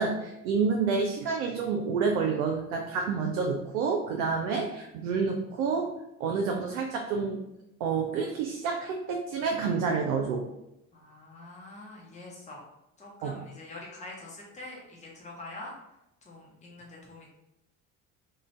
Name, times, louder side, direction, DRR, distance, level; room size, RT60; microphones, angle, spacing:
voice 1, 0.0-5.9 6.2-7.4 7.8-10.5 13.2-13.4, right 5 dB, 70° right, 2 dB, 0.5 m, -29 dB
voice 2, 10.9-12.7 13.0-15.7 16.2-17.3, left 2 dB, 15° left, -3 dB, 0.9 m, -45 dB
2.5 x 2.2 x 3.1 m, 0.87 s
hypercardioid pair, 55°, 43 cm